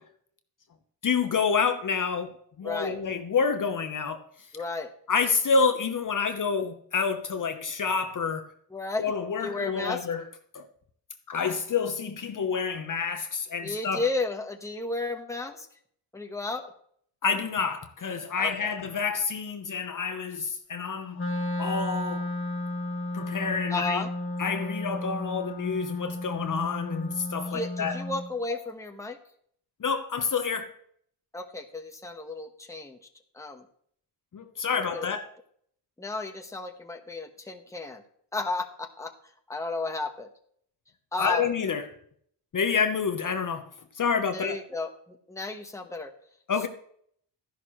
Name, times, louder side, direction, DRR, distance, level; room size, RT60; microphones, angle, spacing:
voice 1, 1.0-2.3 2.6-4.2 5.1-8.5 9.0-10.2 10.5-10.7 11.3-14.0 17.2-21.2 21.6-22.3 23.1-24.0 24.4-28.0 28.5-28.6 29.8-30.7 34.3-35.3 41.2-41.9 42.5-43.7 43.9-44.6 46.5-46.7, left 5 dB, 45° left, 7 dB, 0.9 m, -28 dB
voice 2, 2.6-3.0 4.5-4.9 8.7-9.0 9.4-10.1 13.6-15.7 16.1-16.7 18.4-18.7 23.7-24.1 27.5-29.2 31.3-33.0 33.3-33.6 34.7-35.1 36.0-38.0 38.3-39.1 39.5-40.3 41.1-41.4 44.3-46.1, left 3 dB, 5° left, 3 dB, 1.1 m, -33 dB
Wind instrument woodwind instrument, 21.1-28.3, left 2 dB, 30° left, 1.4 m, -33 dB
13.0 x 11.0 x 3.1 m, 0.64 s
cardioid pair, 115°, 43 cm